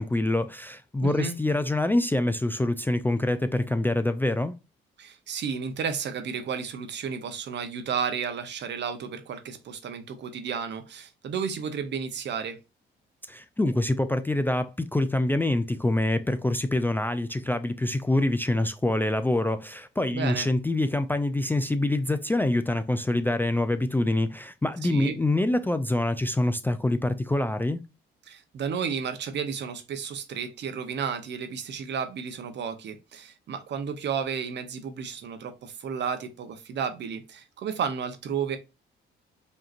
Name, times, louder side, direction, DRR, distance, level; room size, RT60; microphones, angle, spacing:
voice 1, 0.0-4.6 13.3-27.8, left 1 dB, 10° left, 0.3 m, -25 dB
voice 2, 1.0-1.3 5.0-12.6 20.1-20.5 24.8-25.2 28.3-38.6, right 6 dB, 60° right, 0.8 m, -32 dB
5.1 x 2.8 x 2.5 m
cardioid pair, 90°, 20 cm